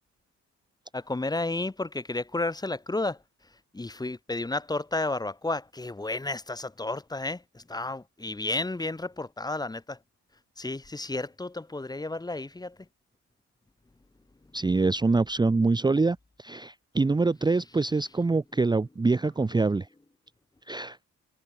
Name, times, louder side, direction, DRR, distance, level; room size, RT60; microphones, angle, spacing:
voice 1, 0.9-3.2 3.7-10.0 10.6-12.8, left 2 dB, 15° left, 1.7 m, -32 dB
voice 2, 14.5-19.9 20.7-21.0, right 3 dB, 15° right, 0.8 m, -25 dB
cardioid pair, 110°, 29 cm